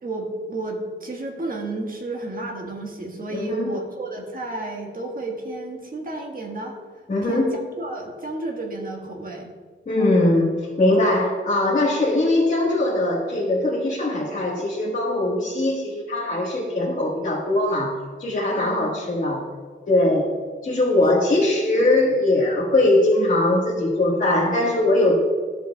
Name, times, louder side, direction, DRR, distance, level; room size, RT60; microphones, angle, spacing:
voice 1, 0.0-9.5 10.0-10.4 18.7-19.0, right 2 dB, 45° right, 0 dB, 1.5 m, -32 dB
voice 2, 3.3-3.7 7.1-7.6 9.9-19.5 19.9-20.3 20.6-25.2, left 1 dB, 40° left, -6 dB, 1.4 m, -21 dB
13.5 x 7.7 x 2.3 m, 1.5 s
wide cardioid pair, 145°, 20 cm